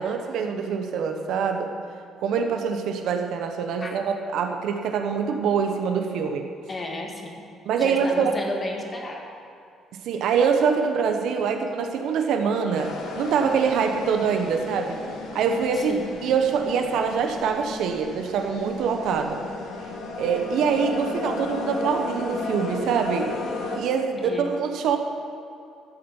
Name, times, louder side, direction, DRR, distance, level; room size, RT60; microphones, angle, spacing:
voice 1, 0.0-1.7 2.2-6.5 7.6-8.3 9.9-15.0 15.3-19.4 20.2-23.3 23.7-25.0, right 6 dB, 75° right, 5 dB, 1.0 m, -24 dB
voice 2, 6.7-7.4 7.8-9.3 15.7-16.1 24.2-24.5, left 2 dB, 25° left, 1 dB, 1.6 m, -33 dB
sound 1, 12.7-23.8, left 3 dB, 80° left, 1.6 m, -34 dB
13.0 x 7.1 x 7.1 m, 2.4 s
cardioid pair, 140°, 0 cm